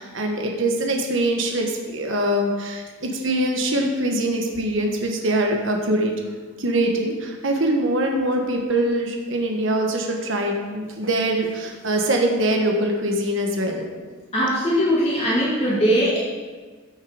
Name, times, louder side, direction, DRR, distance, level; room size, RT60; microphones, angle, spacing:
voice 1, 0.0-6.1 6.6-13.9, right 1 dB, 60° right, 2 dB, 1.3 m, -23 dB
voice 2, 14.3-16.2, equal, 30° left, -7 dB, 2.0 m, -20 dB
13.5 x 6.5 x 4.9 m, 1.4 s
head